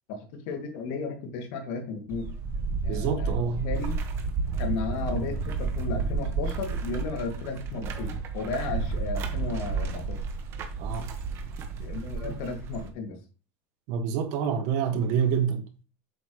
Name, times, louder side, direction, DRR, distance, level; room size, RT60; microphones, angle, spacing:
voice 1, 0.1-2.3 2.8-4.0 4.6-10.2 11.8-13.2, left 4 dB, 65° left, 2.3 m, -34 dB
sound 1, 2.1-12.9, right 4 dB, 40° right, 1.4 m, -31 dB
voice 2, 2.9-3.8 10.8-11.1 12.2-12.3 13.9-15.6, right 7 dB, 60° right, 1.6 m, -27 dB
8.1 x 5.9 x 3.1 m
supercardioid pair, 135°, 7 cm